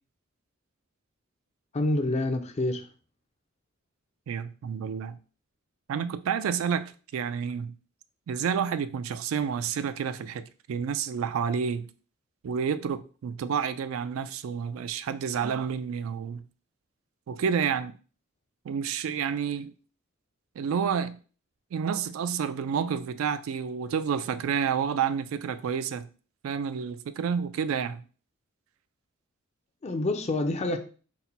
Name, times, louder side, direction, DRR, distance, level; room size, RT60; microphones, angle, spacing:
voice 1, 1.7-2.9 29.8-30.8, left 2 dB, 30° left, 0.4 m, -27 dB
voice 2, 4.3-5.2 5.9-7.7 8.3-11.9 12.4-16.4 17.3-17.9 18.7-19.7 20.6-21.2 21.7-26.1 26.4-28.0, right 7 dB, 75° right, 0.3 m, -29 dB
4.1 x 2.1 x 4.2 m
head